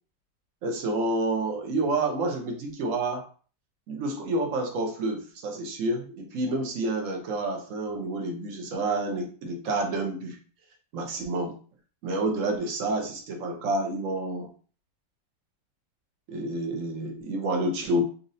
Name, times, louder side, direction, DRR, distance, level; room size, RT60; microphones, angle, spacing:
voice 1, 0.6-3.2 3.9-10.4 10.9-11.6 12.0-14.5 16.3-18.0, right 2 dB, 55° right, 3 dB, 1.0 m, -29 dB
4.1 x 2.6 x 2.6 m, 0.40 s
omnidirectional pair, 1.9 m